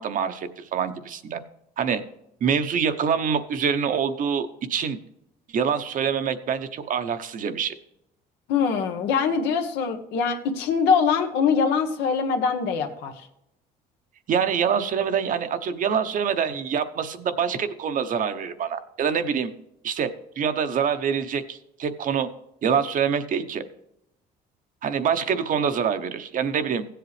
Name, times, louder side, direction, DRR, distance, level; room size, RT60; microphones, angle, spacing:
voice 1, 0.0-1.4 1.8-2.0 2.4-5.0 5.5-7.7 14.3-19.5 19.8-20.1 20.4-22.3 22.6-23.6 24.8-26.8, right 7 dB, 50° right, 10 dB, 0.9 m, -25 dB
voice 2, 8.5-13.3, left 6 dB, 90° left, 5 dB, 1.3 m, -23 dB
16.0 x 7.9 x 3.2 m, 0.82 s
cardioid pair, 110°, 17 cm